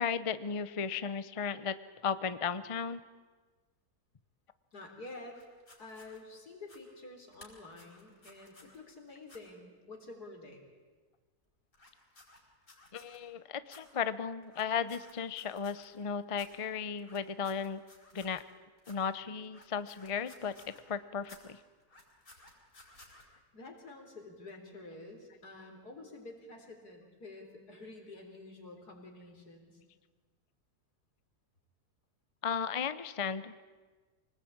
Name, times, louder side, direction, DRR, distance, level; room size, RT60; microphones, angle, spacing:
voice 1, 0.0-1.7 2.0-3.0 12.9-17.8 18.1-18.4 18.9-20.5 20.9-21.6 32.4-33.6, left 6 dB, 35° left, 14 dB, 0.5 m, -35 dB
voice 2, 4.7-5.4 5.8-10.6 23.2-29.8, left 2 dB, 80° left, 3 dB, 4.1 m, -49 dB
sound 1, 5.3-6.2 6.6-6.8 7.3-8.8 9.2-9.4 11.7-13.2 13.7-13.8 14.4-16.0 16.3-16.5 17.0-18.5 18.8-19.0 19.4-20.9 21.2-21.4 21.8-23.2, left 2 dB, 65° left, 5.2 m, -57 dB
24.5 x 19.0 x 8.7 m, 1.4 s
omnidirectional pair, 1.6 m